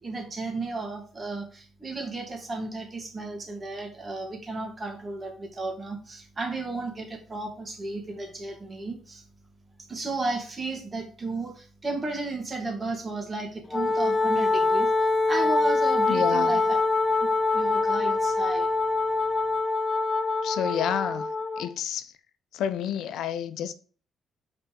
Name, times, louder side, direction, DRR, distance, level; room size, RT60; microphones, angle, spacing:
voice 1, 0.0-9.2 9.9-16.8 17.2-17.3 17.5-18.7, right 3 dB, 30° right, 2.2 m, -34 dB
Wind instrument woodwind instrument, 13.7-21.7, left 3 dB, 25° left, 0.6 m, -24 dB
voice 2, 16.1-16.6 20.4-21.3 21.6-22.1 22.5-23.7, left 9 dB, 80° left, 0.6 m, -29 dB
5.5 x 4.1 x 6.0 m
cardioid pair, 90°, 0 cm